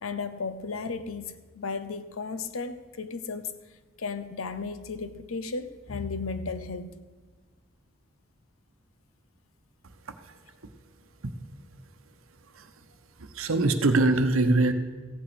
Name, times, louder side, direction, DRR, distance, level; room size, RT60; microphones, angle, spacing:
voice 1, 0.0-3.5 4.0-7.0, left 4 dB, 90° left, 0.8 m, -34 dB
voice 2, 13.2-14.7, right 2 dB, 85° right, 0.9 m, -23 dB
15.0 x 8.7 x 5.1 m
head